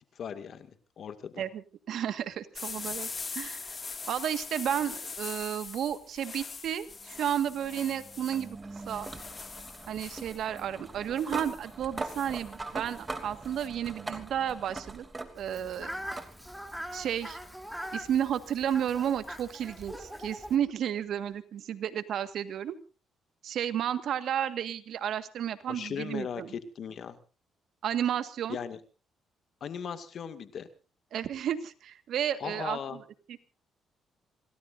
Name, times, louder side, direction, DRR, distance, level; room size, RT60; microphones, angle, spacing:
voice 1, 0.2-0.7 1.0-1.4 25.7-26.4 26.8-27.2 28.5-28.8 29.6-30.7 32.4-33.0, left 7 dB, 60° left, 9 dB, 2.2 m, -37 dB
voice 2, 1.4-3.1 3.3-3.6 4.1-8.6 8.9-9.1 9.9-15.0 15.4-15.9 16.9-17.4 17.9-22.8 23.4-26.5 27.8-28.6 31.1-33.4, right 9 dB, 70° right, 11 dB, 1.7 m, -32 dB
sound 1, 2.5-13.7, left 4 dB, 35° left, 2.2 m, -42 dB
sound 2, 6.8-15.6 16.1-16.3 17.6-17.7 20.6-20.7, right 3 dB, 20° right, 2.9 m, -42 dB
Fowl, 15.4-20.6, equal, ahead, 3.2 m, -42 dB
27.5 x 18.0 x 2.6 m, 0.34 s
cardioid pair, 90°, 0 cm